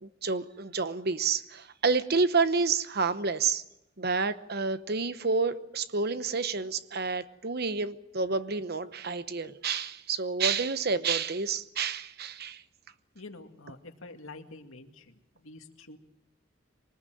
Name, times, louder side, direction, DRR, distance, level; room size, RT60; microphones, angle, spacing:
voice 1, 0.0-3.6 4.0-12.6, right 4 dB, 50° right, 13 dB, 0.9 m, -29 dB
voice 2, 13.2-16.0, left 2 dB, 90° left, 5 dB, 2.2 m, -47 dB
24.0 x 20.0 x 7.7 m, 0.90 s
head